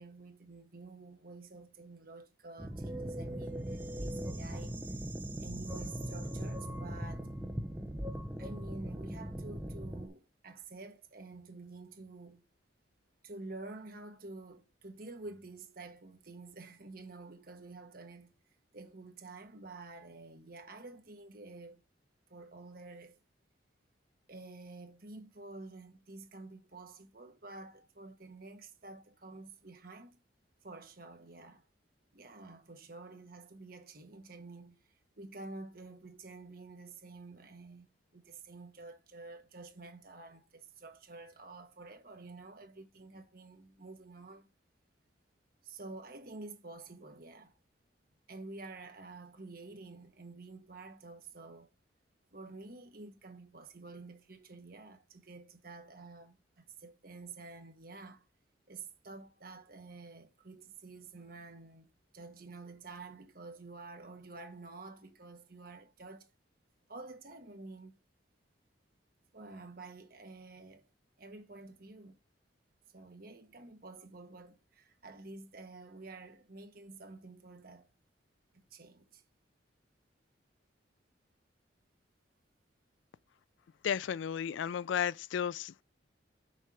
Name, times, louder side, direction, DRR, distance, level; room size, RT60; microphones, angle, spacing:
voice 1, 0.0-4.8 5.4-7.3 8.4-12.5 13.2-18.3 18.7-21.8 22.3-23.2 24.3-30.2 30.6-31.6 32.1-34.8 35.2-37.9 38.1-44.5 45.6-47.6 48.3-51.7 52.3-58.2 58.7-66.3 66.9-68.0 69.3-70.9 71.2-72.2 72.9-77.9 78.5-79.2, right 3 dB, 50° right, 1.3 m, -49 dB
sound 1, 2.6-10.1, right 1 dB, 10° right, 0.7 m, -39 dB
voice 2, 83.8-85.8, left 8 dB, 80° left, 0.3 m, -33 dB
6.4 x 4.4 x 5.0 m
head